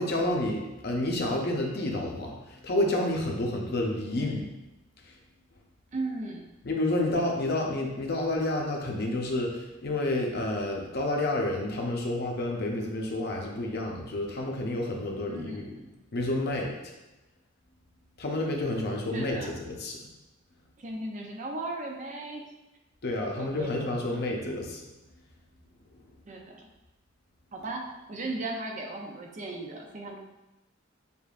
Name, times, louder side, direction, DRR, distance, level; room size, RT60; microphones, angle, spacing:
voice 1, 0.0-4.5 5.0-5.1 6.6-15.7 16.1-16.9 18.2-20.0 23.0-24.8, left 1 dB, 55° left, 0 dB, 0.7 m, -29 dB
voice 2, 5.9-6.5 15.3-15.9 19.1-19.6 20.8-22.5 23.2-24.3 26.3-26.7 27.5-30.2, right 2 dB, 40° right, 1 dB, 0.5 m, -37 dB
6.7 x 2.6 x 2.4 m, 0.99 s
head